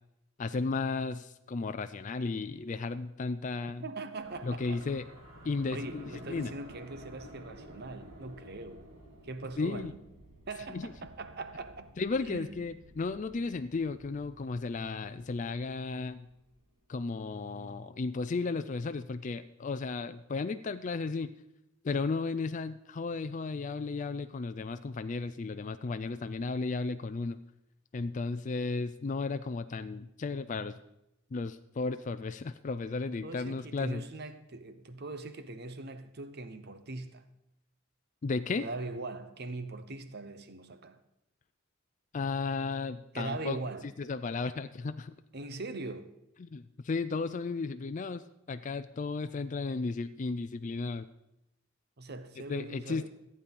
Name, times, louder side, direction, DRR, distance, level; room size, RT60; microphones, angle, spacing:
voice 1, 0.4-3.8 4.4-5.0 5.4-6.5 9.6-9.9 10.7-10.9 12.0-16.3 16.9-21.3 21.8-27.4 27.9-30.8 31.3-34.0 38.2-38.7 42.1-43.6 44.0-45.1 46.4-51.1 52.5-53.1, left 4 dB, 40° left, 0.4 m, -34 dB
voice 2, 3.8-4.8 5.7-8.8 9.2-10.0 10.5-11.9 12.2-12.5 33.1-37.2 38.6-41.0 43.1-43.9 45.3-46.1 52.0-53.1, right 2 dB, 55° right, 0.9 m, -41 dB
sound 1, 4.2-16.8, equal, 75° right, 4.4 m, -53 dB
14.5 x 8.5 x 5.4 m
head